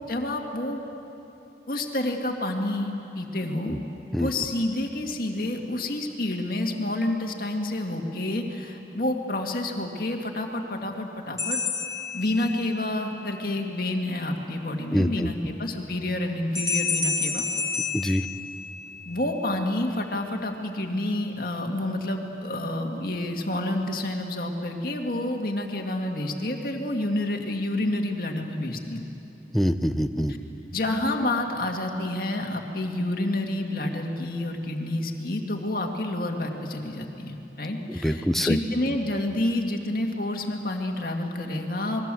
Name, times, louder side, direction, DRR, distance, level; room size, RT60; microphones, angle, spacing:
voice 1, 0.1-0.8 1.7-3.8 4.2-11.6 12.1-17.4 19.1-29.1 30.7-42.0, left 1 dB, 50° left, 2 dB, 2.1 m, -29 dB
sound 1, 11.4-12.9 16.5-19.1, left 4 dB, 20° left, 2.7 m, -29 dB
voice 2, 14.9-15.3 17.9-18.3 29.5-30.3 37.9-38.6, equal, ahead, 7 dB, 0.7 m, -25 dB
28.0 x 21.5 x 7.7 m, 3.0 s
head